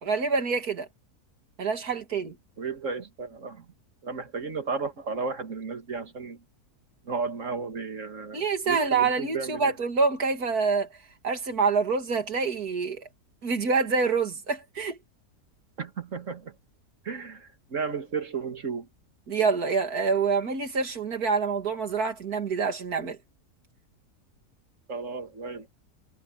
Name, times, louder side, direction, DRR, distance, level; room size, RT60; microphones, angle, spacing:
voice 1, 0.0-0.9 1.6-2.4 8.3-10.9 11.2-13.1 13.4-15.0 19.3-23.2, right 4 dB, 70° right, 2.8 m, -26 dB
voice 2, 2.6-3.7 4.0-6.4 7.1-9.7 15.8-16.5 17.0-18.9 24.9-25.7, right 5 dB, 50° right, 2.4 m, -33 dB
omnidirectional pair, 1.7 m